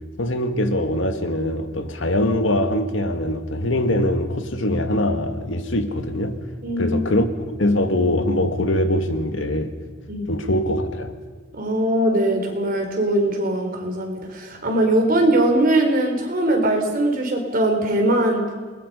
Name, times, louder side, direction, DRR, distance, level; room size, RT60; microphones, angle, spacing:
voice 1, 0.2-6.4 6.8-7.3 7.6-9.8 10.3-11.1, left 1 dB, 75° left, 2.0 m, -22 dB
voice 2, 6.6-7.1 10.1-10.2 11.5-18.5, right 1 dB, 45° right, 4.2 m, -21 dB
28.0 x 21.0 x 5.6 m
head